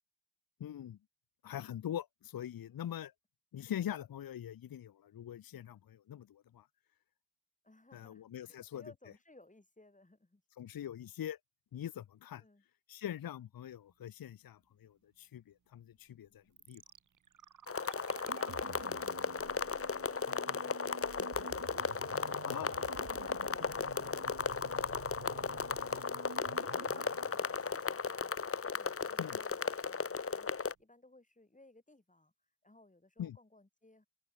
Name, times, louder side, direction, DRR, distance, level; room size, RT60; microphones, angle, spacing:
voice 1, 0.6-1.0 1.4-3.1 3.5-6.7 7.9-8.8 10.6-11.4 11.7-12.4 12.9-16.8 22.5-22.7 29.2-29.4 33.2-33.4, left 10 dB, 60° left, 0.8 m, -43 dB
voice 2, 7.6-10.4 12.4-12.6 26.7-32.3 32.6-34.1, left 2 dB, 20° left, 5.9 m, -62 dB
sound 1, 16.6-28.6 28.8-28.9, right 7 dB, 50° right, 1.1 m, -51 dB
sound 2, 17.7-30.7, left 5 dB, 35° left, 1.2 m, -36 dB
open air
cardioid pair, 55°, 40 cm